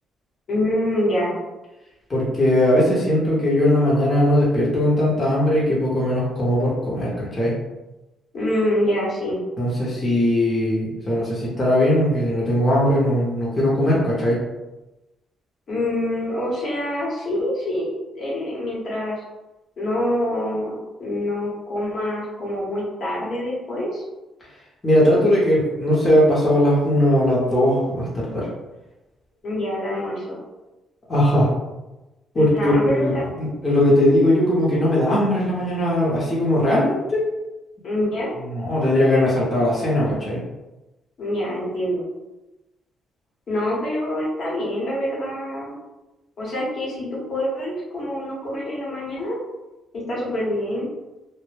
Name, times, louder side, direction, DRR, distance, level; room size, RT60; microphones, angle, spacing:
voice 1, 0.5-1.4 8.3-9.4 15.7-17.9 18.1-19.2 19.8-24.0 29.4-30.4 32.3-33.3 37.8-38.3 41.2-42.0 43.5-45.7 46.4-49.4 49.9-50.9, left 1 dB, 55° left, -5 dB, 1.0 m, -25 dB
voice 2, 2.1-7.6 9.6-14.4 24.8-28.5 31.1-31.5 32.3-37.3 38.4-40.4, left 1 dB, 25° left, -7 dB, 0.8 m, -19 dB
2.1 x 2.0 x 3.2 m, 1.0 s
cardioid pair, 90°, 0 cm